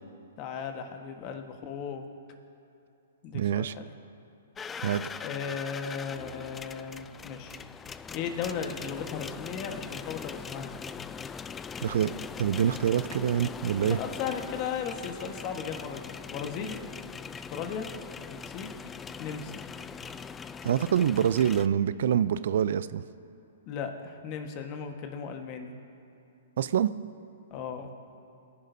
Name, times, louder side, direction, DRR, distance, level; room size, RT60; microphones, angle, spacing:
voice 1, 0.4-2.0 3.2-3.9 5.2-7.6 8.1-10.7 13.9-16.8 17.3-17.9 18.3-18.7 19.2-19.6 23.7-25.7 27.5-27.9, left 7 dB, 40° left, 5 dB, 1.4 m, -36 dB
voice 2, 3.3-3.7 4.8-5.0 11.8-12.1 12.4-14.0 20.6-23.0 26.6-26.9, right 9 dB, 65° right, 16 dB, 0.4 m, -25 dB
sound 1, 4.6-21.7, left 6 dB, 15° left, 0.3 m, -41 dB
23.5 x 10.5 x 2.7 m, 2.8 s
hypercardioid pair, 125°, 0 cm